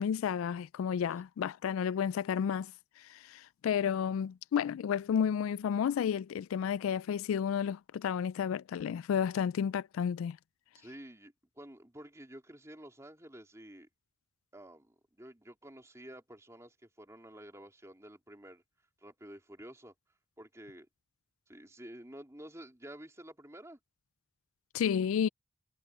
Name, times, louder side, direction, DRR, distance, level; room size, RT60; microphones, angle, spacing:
voice 1, 0.0-2.7 3.0-10.4 24.7-25.3, left 8 dB, 90° left, 0.3 m, -31 dB
voice 2, 10.7-13.9 14.5-18.6 19.0-19.9 20.4-20.9 21.5-23.8, right 1 dB, 15° right, 3.3 m, -50 dB
head